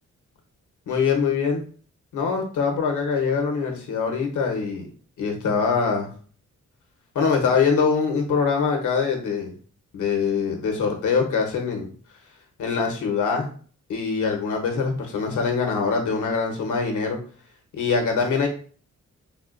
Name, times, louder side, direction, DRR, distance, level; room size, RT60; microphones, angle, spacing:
voice 1, 0.9-1.6 2.1-4.9 5.2-6.1 7.1-9.5 9.9-11.9 12.6-13.5 13.9-17.2 17.7-18.5, left 5 dB, 85° left, 3 dB, 0.8 m, -23 dB
3.6 x 2.1 x 2.4 m, 0.42 s
wide cardioid pair, 115°, 29 cm